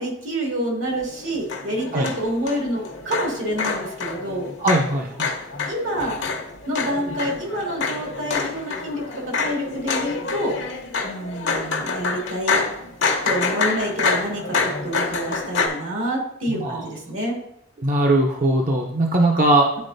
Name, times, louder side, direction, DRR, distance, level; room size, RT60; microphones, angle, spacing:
voice 1, 0.0-4.5 5.7-6.2 6.7-10.6 11.0-12.6 13.2-17.4, equal, 85° right, -1 dB, 2.3 m, -27 dB
sound 1, 0.9-15.7, left 4 dB, 70° left, 1.0 m, -27 dB
voice 2, 4.6-5.3 16.5-16.9 17.8-19.8, right 1 dB, 45° right, 1 dB, 0.6 m, -20 dB
10.5 x 4.1 x 2.6 m, 0.75 s
head